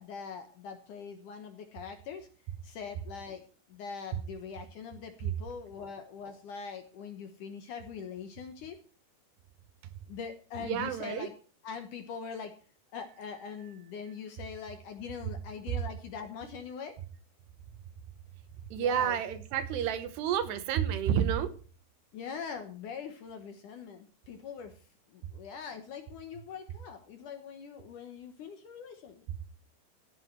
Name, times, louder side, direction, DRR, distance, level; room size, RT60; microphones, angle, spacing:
voice 1, 0.0-2.3 2.6-3.4 3.7-8.8 10.1-11.3 11.6-12.5 12.9-16.9 18.8-19.4 22.1-24.7 25.1-29.3, left 6 dB, 65° left, 7 dB, 2.2 m, -42 dB
voice 2, 10.6-11.3 18.7-21.5, right 9 dB, 80° right, 11 dB, 3.3 m, -30 dB
16.0 x 8.3 x 4.6 m, 0.40 s
omnidirectional pair, 4.8 m